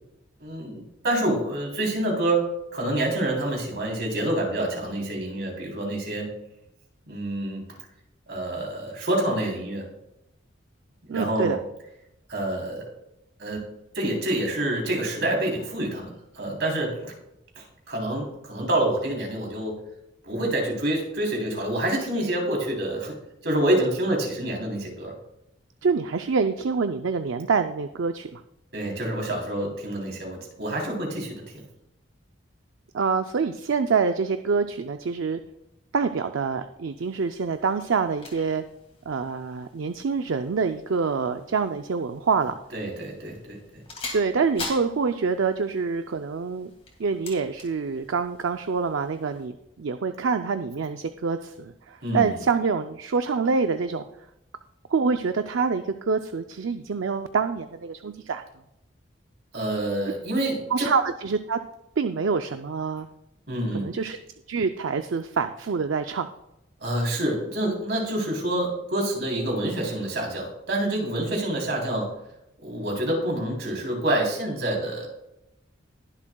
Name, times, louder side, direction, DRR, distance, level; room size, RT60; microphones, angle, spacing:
voice 1, 0.4-6.3 7.1-7.6 8.3-9.8 11.0-11.6 12.3-12.8 13.4-13.6 14.0-17.1 17.6-19.7 20.2-23.2 23.4-25.1 28.7-31.4 42.7-43.8 52.0-52.4 59.5-60.9 63.5-63.9 66.8-72.1 72.6-75.1, right 1 dB, 60° right, -1 dB, 3.5 m, -27 dB
voice 2, 11.1-11.6 25.8-28.4 32.9-35.4 35.9-38.6 39.1-42.5 44.1-46.7 47.0-54.0 54.9-58.4 60.7-61.6 62.0-63.1 63.7-64.2 64.5-66.3, right 5 dB, 75° right, 8 dB, 0.5 m, -26 dB
Gun safety check and loading, 37.0-49.5, left 3 dB, 30° left, 2.4 m, -44 dB
21.0 x 7.3 x 2.3 m, 0.86 s
head